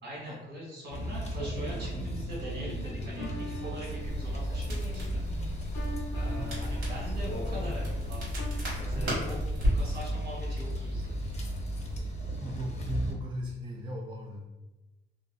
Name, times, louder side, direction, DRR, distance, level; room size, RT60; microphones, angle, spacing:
voice 1, 0.0-5.2 6.1-8.4 8.8-9.4 9.7-11.1, equal, 65° right, -4 dB, 1.4 m, -42 dB
sound 1, 0.9-13.1, right 1 dB, 35° left, 0.6 m, -36 dB
sound 2, 2.8-8.5, left 2 dB, 80° left, 0.4 m, -45 dB
Crackle, 4.0-12.0, left 1 dB, 80° right, 1.4 m, -34 dB
voice 2, 12.4-14.5, equal, 25° right, 0 dB, 0.3 m, -37 dB
2.5 x 2.5 x 2.2 m, 1.0 s
cardioid pair, 90°, 20 cm